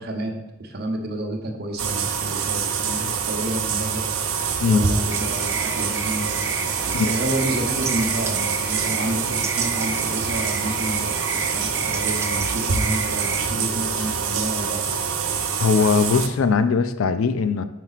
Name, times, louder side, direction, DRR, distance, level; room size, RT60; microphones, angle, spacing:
voice 1, 0.0-4.1 4.6-6.3 6.8-14.9, right 1 dB, 50° right, 3 dB, 0.9 m, -30 dB
sound 1, 1.8-16.3, right 6 dB, 90° right, 0.6 m, -25 dB
sound 2, 5.1-13.5, right 3 dB, 15° right, 0.3 m, -32 dB
voice 2, 15.6-17.6, left 5 dB, 70° left, 11 dB, 0.4 m, -20 dB
5.9 x 4.0 x 4.0 m, 0.97 s
head